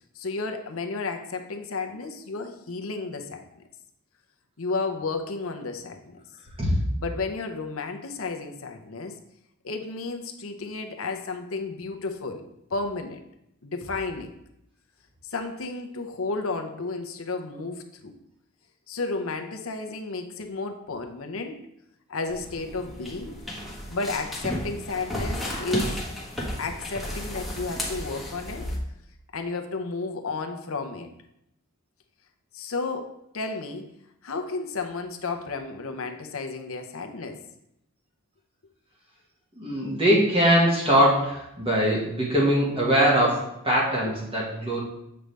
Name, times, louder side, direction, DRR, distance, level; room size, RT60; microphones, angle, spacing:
voice 1, 0.1-3.5 4.6-6.2 7.0-9.2 9.6-13.2 13.6-14.4 15.2-18.2 18.9-21.6 22.1-23.4 23.9-26.0 26.6-28.7 29.3-31.1 32.5-33.9 34.2-37.4 44.1-44.2, left 3 dB, 65° left, 6 dB, 0.8 m, -32 dB
sound 1, 22.3-28.8, equal, ahead, 1.3 m, -33 dB
voice 2, 39.6-44.8, equal, 25° right, -5 dB, 1.6 m, -22 dB
7.8 x 5.2 x 3.4 m, 0.80 s
head